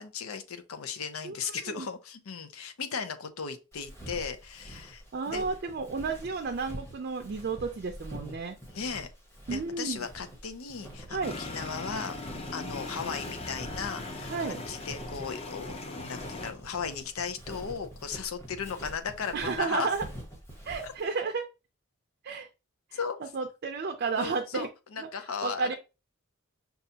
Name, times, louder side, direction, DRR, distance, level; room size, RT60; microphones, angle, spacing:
voice 1, 0.0-5.4 8.7-9.1 9.5-12.2 12.5-19.9 20.8-20.9 22.9-23.2 24.2-25.8, left 6 dB, 80° left, 0.6 m, -36 dB
Walk footsteps, 3.7-21.1, equal, 10° left, 1.0 m, -46 dB
voice 2, 5.1-8.6 9.5-10.0 11.1-11.4 14.3-14.6 19.3-20.0 20.7-21.5 22.2-22.5 23.3-24.7 25.0-25.1 25.4-25.8, right 4 dB, 50° right, 0.4 m, -32 dB
sound 1, 11.2-16.5, left 2 dB, 30° left, 0.6 m, -39 dB
5.3 x 2.3 x 2.7 m
head